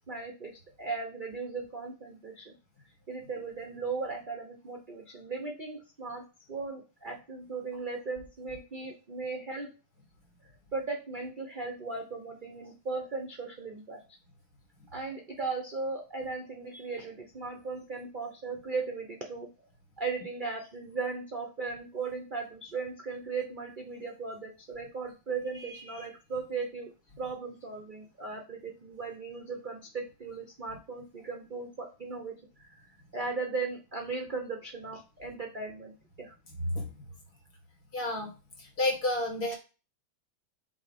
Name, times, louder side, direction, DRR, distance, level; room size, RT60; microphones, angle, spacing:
voice 1, 0.1-2.5 3.1-9.7 10.7-14.0 14.9-19.5 20.0-26.9 27.2-32.9 33.1-36.3, right 4 dB, 60° right, 1 dB, 0.5 m, -37 dB
voice 2, 25.6-26.1 36.7-36.9 37.9-38.3 38.6-39.6, left 2 dB, 45° left, 1 dB, 2.2 m, -31 dB
6.2 x 3.0 x 5.2 m, 0.33 s
omnidirectional pair, 2.3 m